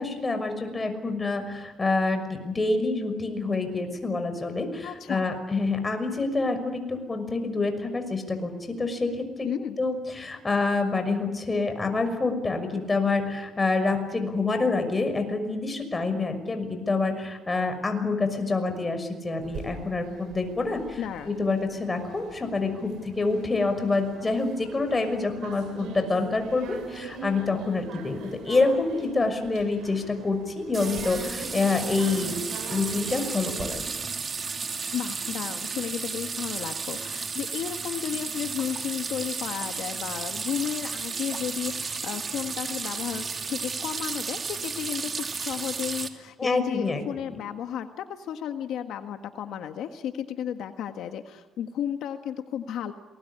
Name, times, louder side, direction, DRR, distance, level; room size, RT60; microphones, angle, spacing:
voice 1, 0.0-8.5 8.8-21.0 21.3-33.8 46.4-47.0, left 3 dB, 25° left, 7 dB, 6.0 m, -27 dB
voice 2, 4.8-5.4 9.4-9.8 21.0-21.5 34.9-52.9, left 9 dB, 80° left, 7 dB, 1.5 m, -33 dB
sound 1, 19.4-33.6, right 5 dB, 85° right, 7.4 m, -43 dB
sound 2, 30.7-46.1, right 5 dB, 40° right, 2.7 m, -33 dB
27.5 x 21.0 x 9.9 m, 1.2 s
cardioid pair, 90°, 0 cm